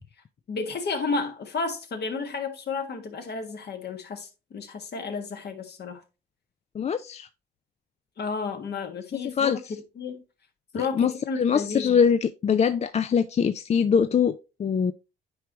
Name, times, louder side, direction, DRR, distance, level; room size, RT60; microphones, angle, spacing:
voice 1, 0.5-6.0 8.2-10.2 10.7-11.9, left 4 dB, 55° left, 1.6 m, -32 dB
voice 2, 6.7-7.3 9.3-9.6 10.8-14.9, left 7 dB, 35° left, 0.4 m, -23 dB
9.5 x 4.7 x 2.9 m
cardioid pair, 90°, 20 cm